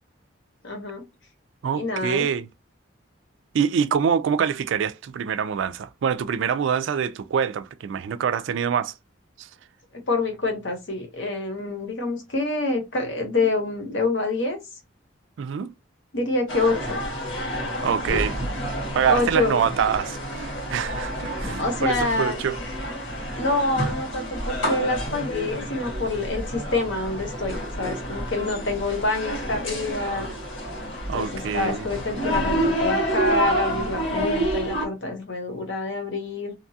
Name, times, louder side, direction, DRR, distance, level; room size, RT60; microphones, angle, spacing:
voice 1, 0.6-1.1 1.7-2.3 10.1-14.6 16.1-17.0 18.1-18.2 19.1-19.6 21.6-22.4 23.4-30.3 31.1-36.5, left 2 dB, 65° left, 0.9 m, -26 dB
voice 2, 1.6-2.5 3.5-8.9 9.4-9.5 15.4-15.7 17.8-18.4 18.9-22.6 31.1-31.9, right 7 dB, 70° right, 0.3 m, -25 dB
sound 1, 16.5-34.9, equal, 90° left, 1.5 m, -29 dB
2.8 x 2.3 x 2.7 m
head